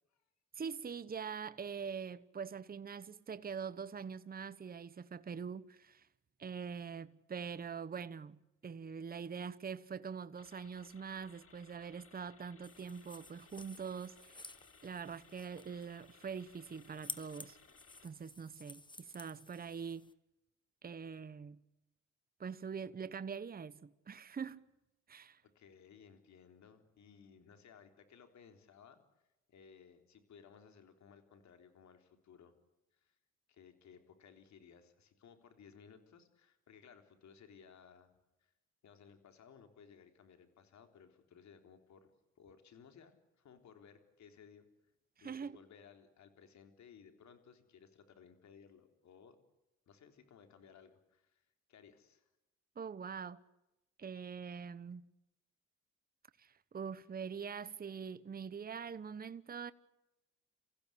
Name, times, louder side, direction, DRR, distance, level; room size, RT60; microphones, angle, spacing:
voice 1, 0.6-6.1 6.4-14.4 14.8-17.6 18.0-20.1 20.8-21.6 22.4-24.6 25.1-25.4 45.2-45.6 52.8-53.4 54.0-55.1 56.4-59.7, right 6 dB, 30° right, 1.0 m, -44 dB
sound 1, 10.4-18.1, left 5 dB, 45° left, 3.8 m, -63 dB
sound 2, 12.6-20.1, left 2 dB, 15° left, 1.6 m, -53 dB
voice 2, 25.4-29.0 29.5-32.5 32.9-33.2 33.5-38.1 38.4-38.5 38.8-44.7 45.2-49.4 49.9-51.4 51.7-52.2, left 7 dB, 65° left, 3.8 m, -60 dB
29.0 x 16.0 x 10.0 m
cardioid pair, 90°, 30 cm